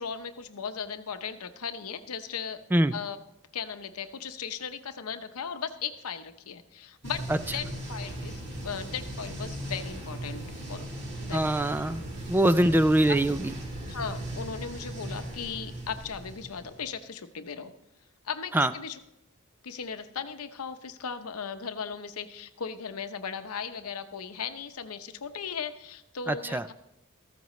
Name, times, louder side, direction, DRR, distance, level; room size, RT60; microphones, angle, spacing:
voice 1, 0.0-2.6 2.9-3.2 3.5-7.3 7.5-10.9 11.2-11.5 12.3-12.7 13.1-13.2 13.9-17.7 18.2-19.0 19.6-26.7, left 6 dB, 85° left, 9 dB, 0.8 m, -37 dB
sound 1, 7.0-16.9, right 1 dB, 55° right, 2.6 m, -38 dB
voice 2, 11.3-13.5 18.5-18.7 26.3-26.6, right 1 dB, 10° right, 12 dB, 0.3 m, -23 dB
14.5 x 14.0 x 3.2 m, 0.85 s
head